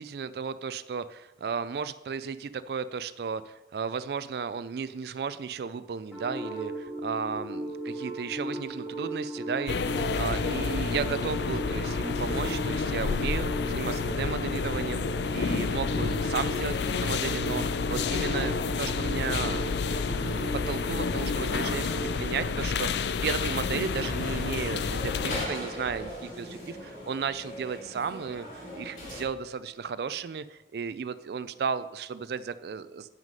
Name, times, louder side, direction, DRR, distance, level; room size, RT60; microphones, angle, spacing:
voice 1, 0.0-28.5 28.7-33.1, right 6 dB, 65° right, 14 dB, 0.3 m, -34 dB
sound 1, 6.1-22.1, right 1 dB, ahead, 2.9 m, -38 dB
sound 2, 9.7-25.5, left 5 dB, 75° left, 0.4 m, -29 dB
sound 3, 23.5-29.2, left 1 dB, 50° left, 3.0 m, -39 dB
9.0 x 6.3 x 5.2 m, 1.1 s
head